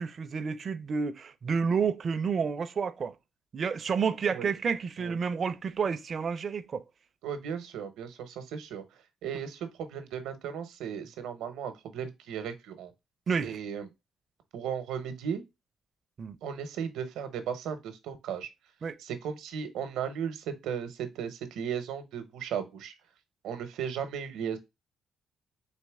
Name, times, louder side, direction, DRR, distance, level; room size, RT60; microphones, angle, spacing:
voice 1, 0.0-3.1 3.5-6.8 13.3-13.6 16.2-16.4 18.8-19.0, right 5 dB, 45° right, 0.4 m, -30 dB
voice 2, 7.2-8.8 9.2-12.9 13.4-13.9 14.5-15.4 16.4-18.5 19.0-22.9 23.4-24.6, right 8 dB, 90° right, 0.8 m, -36 dB
4.1 x 2.9 x 3.4 m
cardioid pair, 90°, 0 cm